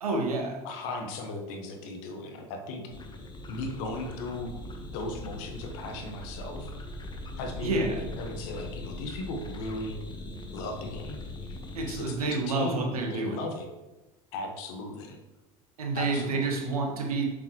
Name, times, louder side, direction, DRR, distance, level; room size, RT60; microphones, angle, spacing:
voice 1, 0.0-0.6 7.6-8.0 11.7-13.4 15.8-17.3, right 3 dB, 85° right, 1 dB, 1.4 m, -29 dB
voice 2, 0.6-2.9 3.5-4.5 4.9-6.7 7.4-10.0 10.5-11.2 11.5-11.6 11.9-13.7 14.3-15.2 15.9-16.4, left 2 dB, 65° left, 4 dB, 1.3 m, -37 dB
sound 1, 2.9-12.1, left 1 dB, 25° left, 1.2 m, -41 dB
7.2 x 6.8 x 3.0 m, 1.1 s
hypercardioid pair, 75°, 18 cm